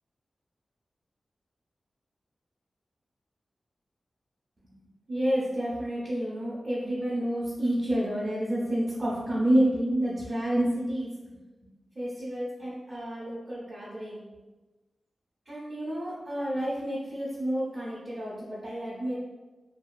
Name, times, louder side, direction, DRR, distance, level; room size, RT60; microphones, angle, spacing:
voice 1, 5.1-11.1 12.0-14.2 15.5-19.1, right 1 dB, 40° right, -8 dB, 0.6 m, -29 dB
2.7 x 2.4 x 2.3 m, 1.2 s
wide cardioid pair, 95°, 0 cm